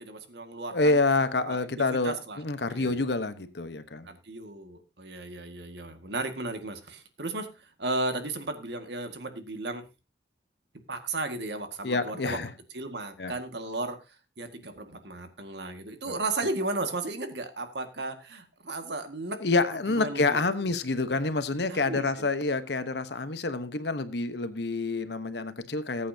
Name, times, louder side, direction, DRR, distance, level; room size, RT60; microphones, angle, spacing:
voice 1, 0.0-1.0 1.4-3.0 4.1-9.8 10.9-12.4 12.7-14.0 14.4-19.4 19.9-20.5 21.7-22.3, right 2 dB, 75° right, 6 dB, 1.9 m, -35 dB
voice 2, 0.7-4.1 11.8-12.5 13.2-13.3 16.1-16.2 19.4-26.1, left 3 dB, 70° left, 11 dB, 1.1 m, -27 dB
19.5 x 8.5 x 2.8 m, 0.28 s
head